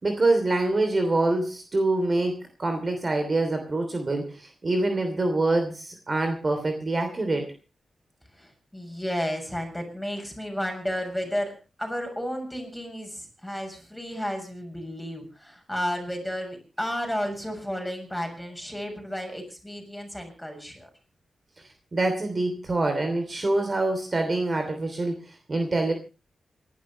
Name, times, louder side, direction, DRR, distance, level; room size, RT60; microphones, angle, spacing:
voice 1, 0.0-7.5 21.9-25.9, right 2 dB, 40° right, 6 dB, 3.0 m, -25 dB
voice 2, 8.3-20.9, equal, 5° left, 3 dB, 6.8 m, -32 dB
27.5 x 12.0 x 3.1 m, 0.31 s
cardioid pair, 70°, 0 cm